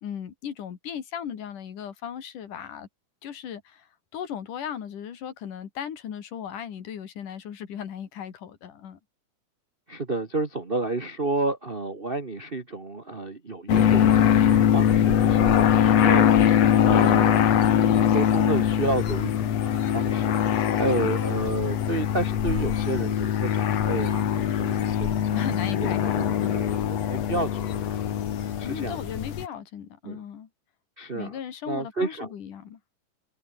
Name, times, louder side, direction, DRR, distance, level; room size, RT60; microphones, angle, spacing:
voice 1, 0.0-2.9 3.2-3.9 4.1-9.0 20.7-21.1 25.3-26.6 28.6-30.5 31.1-32.8, left 8 dB, 75° left, 3.8 m, -36 dB
voice 2, 9.9-25.5 26.0-28.0 28.6-29.0 30.0-30.2 31.0-31.4 31.7-32.3, right 2 dB, 40° right, 0.7 m, -31 dB
sound 1, 13.7-29.5, left 9 dB, 55° left, 2.7 m, -22 dB
omnidirectional pair, 3.7 m